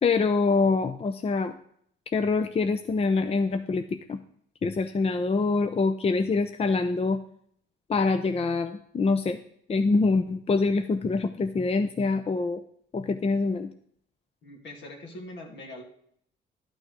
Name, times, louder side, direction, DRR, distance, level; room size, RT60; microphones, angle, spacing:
voice 1, 0.0-1.5 2.1-3.8 4.1-4.2 4.6-7.2 7.9-9.4 9.7-12.6 12.9-13.7, left 4 dB, 30° left, 9 dB, 0.6 m, -25 dB
voice 2, 14.4-15.8, left 1 dB, 65° left, 2 dB, 2.5 m, -42 dB
11.5 x 6.3 x 5.0 m, 0.66 s
cardioid pair, 90°, 20 cm